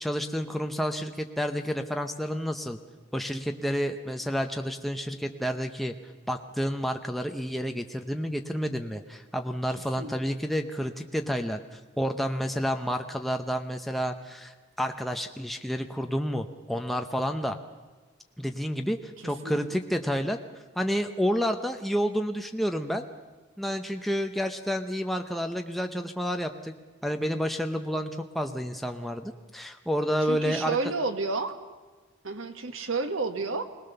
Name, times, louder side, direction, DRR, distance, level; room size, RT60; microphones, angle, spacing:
voice 1, 0.0-2.8 3.1-5.9 6.3-17.6 18.4-20.4 20.8-23.0 23.6-26.7 27.0-30.8, equal, ahead, 4 dB, 0.7 m, -30 dB
voice 2, 19.2-19.6 30.2-31.6 32.2-33.6, right 3 dB, 85° right, 8 dB, 1.5 m, -31 dB
22.0 x 19.0 x 6.8 m, 1.3 s
head